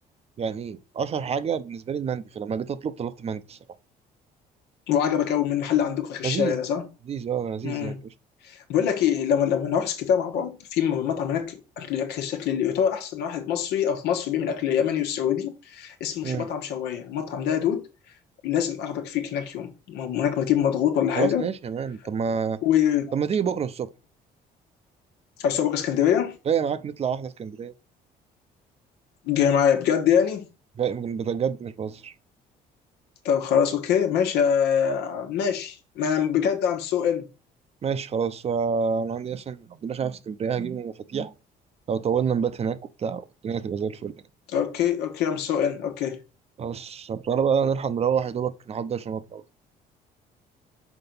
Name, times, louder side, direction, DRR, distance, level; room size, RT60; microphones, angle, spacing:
voice 1, 0.4-3.6 6.2-6.6 7.1-8.0 16.2-16.5 21.2-22.6 23.1-23.9 26.5-27.7 30.8-32.1 37.8-41.3 41.9-44.1 46.6-49.4, right 7 dB, 35° right, 0.6 m, -28 dB
voice 2, 4.9-6.9 7.6-8.0 8.4-17.8 18.4-21.5 22.6-23.1 25.4-26.4 29.2-30.5 33.2-37.3 44.5-46.2, left 8 dB, 85° left, 1.4 m, -24 dB
6.0 x 4.5 x 5.4 m
cardioid pair, 110°, 17 cm